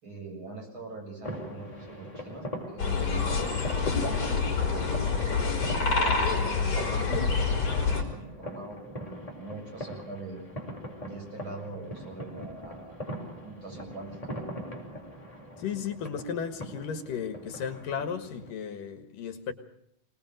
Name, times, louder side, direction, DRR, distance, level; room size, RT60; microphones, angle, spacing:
voice 1, 0.0-3.6 4.4-8.9 9.4-10.4 11.0-13.0 13.4-14.4, right 3 dB, 35° right, 8.2 m, -43 dB
sound 1, 1.2-18.5, equal, 10° left, 5.2 m, -41 dB
sound 2, 2.8-8.0, left 4 dB, 40° left, 5.8 m, -27 dB
voice 2, 15.6-19.5, left 7 dB, 75° left, 3.3 m, -34 dB
25.5 x 19.5 x 6.5 m
omnidirectional pair, 3.9 m